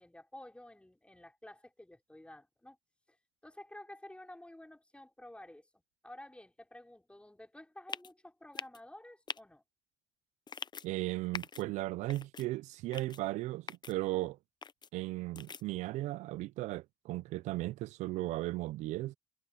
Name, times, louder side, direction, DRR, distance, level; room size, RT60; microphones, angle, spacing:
voice 1, 0.0-2.8 3.1-3.2 3.4-9.6, left 1 dB, 10° left, 5.4 m, -52 dB
sound 1, 7.9-8.1 8.5-8.8 9.3-9.4 10.5-10.9 11.3-11.6 12.1-12.5 12.9-13.2 13.7-13.9 14.6-14.9 15.4-15.6, left 6 dB, 40° left, 0.7 m, -42 dB
voice 2, 10.8-14.4 14.9-19.2, right 18 dB, 85° right, 0.4 m, -36 dB
supercardioid pair, 65°, 12 cm